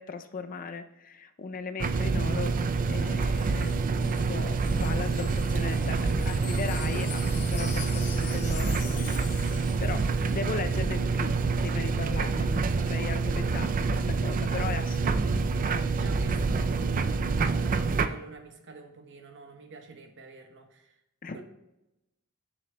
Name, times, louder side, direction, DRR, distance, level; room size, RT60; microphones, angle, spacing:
voice 1, 0.0-11.3 11.6-15.4 21.2-21.4, left 5 dB, 40° left, 9 dB, 0.4 m, -38 dB
sound 1, 1.8-18.1, right 4 dB, 40° right, 0.4 m, -27 dB
Wind chime, 3.2-10.5 10.7-10.9, left 10 dB, 85° left, 0.7 m, -45 dB
voice 2, 15.6-20.9 21.3-21.4, right 3 dB, 55° right, 5 dB, 1.0 m, -45 dB
10.5 x 6.6 x 2.2 m, 0.92 s
head